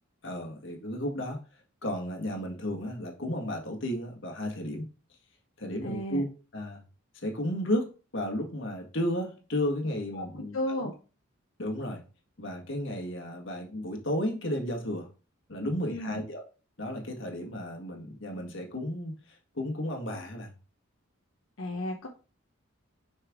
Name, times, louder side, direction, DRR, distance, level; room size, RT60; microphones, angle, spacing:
voice 1, 0.2-1.4 1.8-4.9 5.6-6.3 6.5-6.8 7.2-10.9 11.6-12.0 12.4-15.1 15.5-16.4 16.8-19.2 19.5-20.5, left 1 dB, 60° left, 2 dB, 1.8 m, -33 dB
voice 2, 5.8-6.2 10.1-10.3 10.5-10.9 15.9-16.2 21.6-22.1, left 1 dB, 85° left, 0 dB, 1.0 m, -33 dB
6.7 x 5.5 x 3.7 m, 0.34 s
head